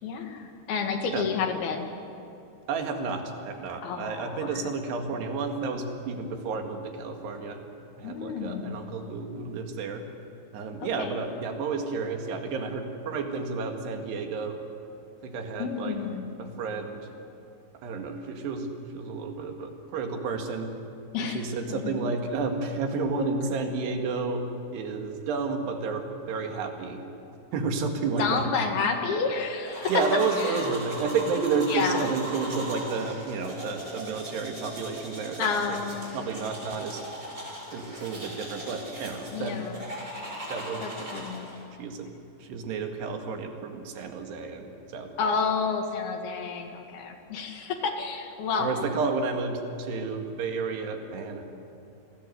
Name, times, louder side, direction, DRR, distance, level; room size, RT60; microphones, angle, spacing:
voice 1, 0.0-1.9 3.8-4.6 8.0-8.8 10.8-11.2 15.6-16.2 21.1-22.0 28.2-30.0 30.3-30.6 31.7-32.1 35.4-36.3 39.3-39.9 40.8-41.5 45.2-48.9, left 5 dB, 70° left, 4 dB, 3.7 m, -30 dB
voice 2, 2.7-7.6 8.0-10.0 10.5-14.6 15.2-16.0 16.4-17.1 17.8-18.7 18.9-20.7 21.2-24.4 24.7-27.0 27.5-28.5 29.9-35.8 36.1-37.0 37.7-39.6 40.5-41.3 41.8-42.1 42.4-45.1 48.6-51.4, right 4 dB, 80° right, 4 dB, 4.1 m, -31 dB
sound 1, 29.7-41.6, right 1 dB, 20° right, 6.0 m, -39 dB
28.5 x 20.0 x 7.9 m, 2.6 s
omnidirectional pair, 4.7 m